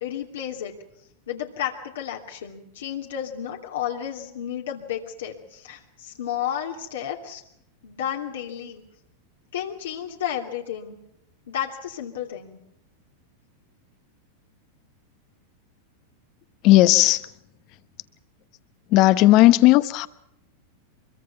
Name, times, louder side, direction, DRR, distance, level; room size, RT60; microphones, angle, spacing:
voice 1, 0.0-0.7 1.3-7.4 7.8-8.8 9.5-11.0 11.5-12.6, left 10 dB, 80° left, 2.8 m, -32 dB
voice 2, 16.6-17.3 18.9-20.1, left 17 dB, 50° left, 1.1 m, -15 dB
24.0 x 22.5 x 5.9 m
hypercardioid pair, 110°, 0 cm